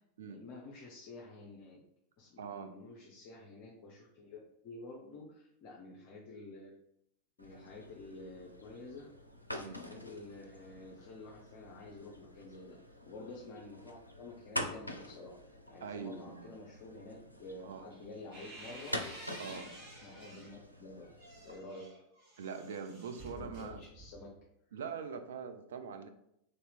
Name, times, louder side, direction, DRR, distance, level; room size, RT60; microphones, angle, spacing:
voice 1, 0.3-1.8 2.2-6.7 7.4-9.1 9.5-12.8 13.1-15.4 15.7-19.0 20.0-21.1 21.4-21.9 23.3-24.3, left 2 dB, 40° left, -2 dB, 0.6 m, -50 dB
voice 2, 2.4-2.8 9.6-9.8 15.8-16.5 17.6-17.9 19.4-19.7 22.4-23.8 24.7-26.1, right 6 dB, 60° right, 7 dB, 0.4 m, -43 dB
sound 1, 7.4-21.6, equal, 90° left, 0.4 m, -46 dB
sound 2, 17.9-20.6 21.0-24.4, right 1 dB, 45° right, 1.4 m, -51 dB
3.2 x 2.8 x 4.1 m, 0.77 s
figure-of-eight pair, 90°, 0 cm